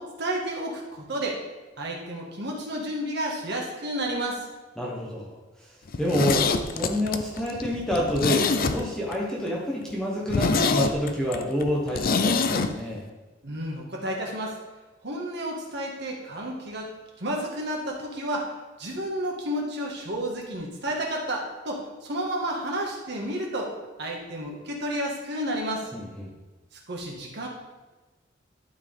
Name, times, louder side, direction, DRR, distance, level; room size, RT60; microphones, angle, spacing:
voice 1, 0.0-1.4 1.8-4.5 13.4-14.6 15.0-16.9 17.2-18.5 18.8-25.9 26.9-27.5, right 1 dB, 65° right, -1 dB, 1.6 m, -31 dB
voice 2, 4.8-13.1 25.9-26.3, equal, 5° left, -4 dB, 1.0 m, -28 dB
Zipper (clothing), 5.9-9.2 9.5-9.6 9.9-10.0 10.3-12.7 13.0-13.1, left 4 dB, 50° left, 0.5 m, -25 dB
12.0 x 4.7 x 3.5 m, 1.2 s
head